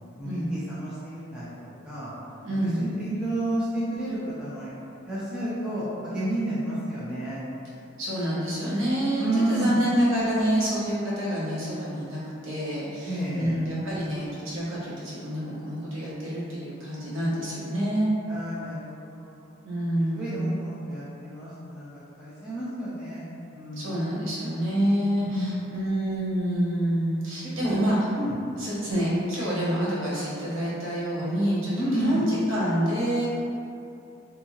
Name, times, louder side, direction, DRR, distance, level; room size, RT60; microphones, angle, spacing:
voice 1, 0.2-2.1 2.6-4.7 5.0-7.4 9.2-9.8 13.0-13.6 18.3-19.4 20.1-21.9 22.2-24.0 25.2-25.6 27.6-27.8 28.2-28.3 31.8-32.3, right 1 dB, 5° right, -11 dB, 0.4 m, -31 dB
voice 2, 2.4-2.8 8.0-18.1 19.6-20.6 23.7-28.0 28.6-33.3, equal, 65° right, -8 dB, 0.8 m, -27 dB
2.7 x 2.7 x 2.3 m, 2.6 s
head